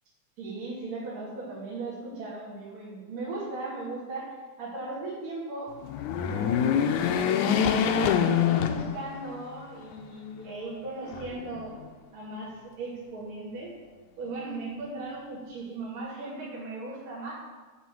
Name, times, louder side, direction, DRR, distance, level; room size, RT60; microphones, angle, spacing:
voice 1, 0.4-5.7 6.2-11.7 12.1-13.7 14.2-17.3, right 2 dB, 90° right, -12 dB, 4.6 m, -38 dB
sound 1, 5.8-9.4 9.9-10.0 11.1-11.9, left 8 dB, 80° left, 2.0 m, -25 dB
10.0 x 4.6 x 7.6 m, 1.3 s
omnidirectional pair, 3.6 m